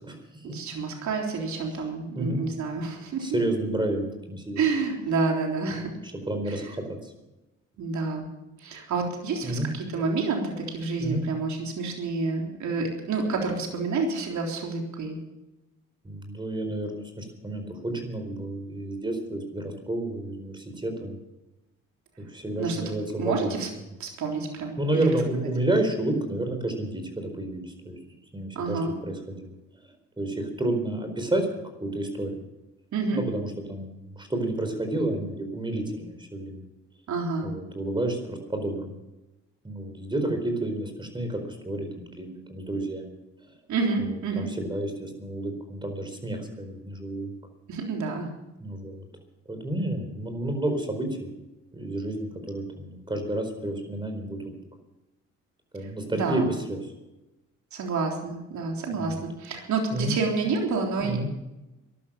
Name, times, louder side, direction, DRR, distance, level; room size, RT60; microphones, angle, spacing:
voice 1, 0.5-3.4 4.6-5.9 6.5-6.7 7.8-8.3 8.6-15.2 22.6-22.8 23.2-23.7 24.0-25.1 28.6-28.9 32.9-33.2 37.1-37.5 43.7-44.5 47.7-48.3 55.8-56.5 57.7-61.2, right 4 dB, 70° right, 1 dB, 3.7 m, -29 dB
voice 2, 3.2-4.6 6.3-6.8 9.4-9.7 11.0-11.3 16.0-21.2 22.3-23.5 24.8-28.0 28.3-29.5 30.2-31.5 31.8-32.3 33.1-36.6 37.4-38.9 39.6-43.1 44.0-47.3 48.6-49.0 49.5-51.3 51.7-54.6 55.7-56.8 58.9-59.1 59.9-60.1 61.0-61.3, right 1 dB, 15° right, 6 dB, 4.4 m, -30 dB
14.5 x 11.5 x 7.4 m, 0.99 s
cardioid pair, 90°, 30 cm